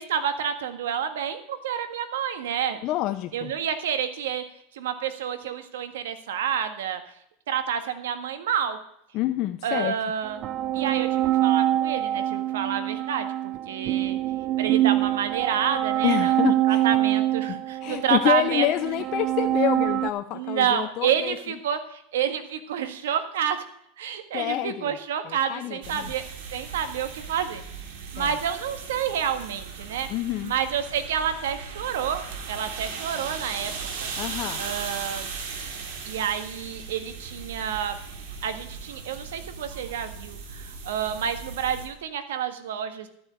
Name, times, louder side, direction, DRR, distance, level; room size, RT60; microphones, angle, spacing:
voice 1, 0.0-2.8 3.3-4.4 4.7-7.0 7.5-8.8 9.6-10.4 10.7-14.2 14.6-18.7 20.3-23.6 24.0-26.2 26.5-27.6 28.1-30.1 30.4-33.7 34.0-34.1 34.6-35.3 36.0-38.0 38.4-43.1, right 8 dB, 90° right, 9 dB, 1.5 m, -29 dB
voice 2, 2.8-3.5 9.1-9.9 16.0-16.8 17.8-21.4 24.3-24.9 25.3-26.1 28.2-28.3 30.1-30.5 34.2-34.6, left 14 dB, 45° left, 8 dB, 0.6 m, -27 dB
sound 1, 10.2-20.1, right 13 dB, 40° right, 0.6 m, -25 dB
sound 2, 25.8-41.9, right 5 dB, 70° right, 2.8 m, -38 dB
12.5 x 6.3 x 8.7 m, 0.71 s
supercardioid pair, 130°, 0 cm